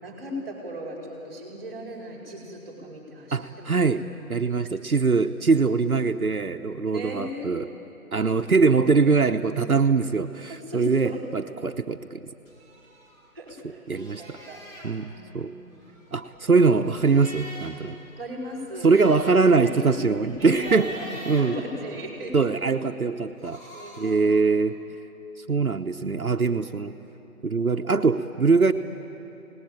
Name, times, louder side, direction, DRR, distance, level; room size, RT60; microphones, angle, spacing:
voice 1, 0.0-3.8 6.9-7.5 10.5-11.2 13.3-14.7 15.0-15.4 15.6-15.8 18.2-19.1 19.6-20.1 20.4-21.1 21.4-22.5 23.7-24.3, equal, 10° right, -1 dB, 4.6 m, -37 dB
voice 2, 3.3-4.0 4.3-7.7 8.1-12.2 13.9-14.4 14.8-15.5 16.1-18.0 18.8-21.6 22.3-23.6 24.0-24.8 25.5-27.0 27.4-28.7, right 4 dB, 75° right, 6 dB, 1.0 m, -22 dB
sound 1, 12.5-13.6 13.9-14.9 15.7-17.9 18.3-18.4 18.7-22.3 23.2-24.3, left 1 dB, 15° left, 4.3 m, -44 dB
29.0 x 19.5 x 8.8 m, 2.9 s
figure-of-eight pair, 160°, 43 cm